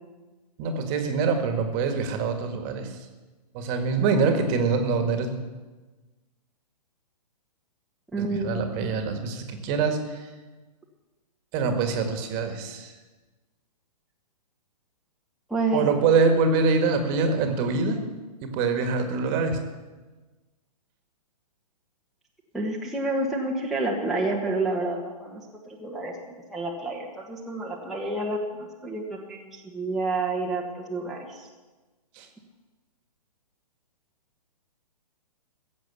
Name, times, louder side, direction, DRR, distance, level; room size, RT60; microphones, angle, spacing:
voice 1, 0.6-3.0 3.5-5.4 8.2-10.3 11.5-12.9 15.7-18.0 18.4-19.6 32.1-32.3, right 4 dB, 30° right, 6 dB, 1.9 m, -24 dB
voice 2, 8.1-8.6 15.5-15.9 22.5-25.4 25.7-26.1 26.5-28.4 28.8-31.5, right 2 dB, ahead, -3 dB, 1.4 m, -29 dB
15.5 x 7.7 x 8.4 m, 1.2 s
hypercardioid pair, 130°, 21 cm